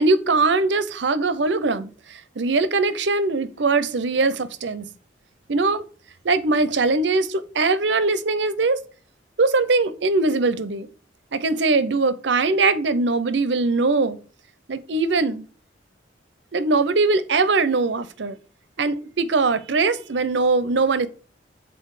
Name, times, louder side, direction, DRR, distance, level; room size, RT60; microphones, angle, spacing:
voice 1, 0.0-4.9 5.5-5.8 6.2-8.8 9.4-10.9 11.3-14.2 14.7-15.5 16.5-18.4 18.8-21.1, right 3 dB, 65° right, 0.7 m, -21 dB
7.8 x 4.1 x 4.8 m
head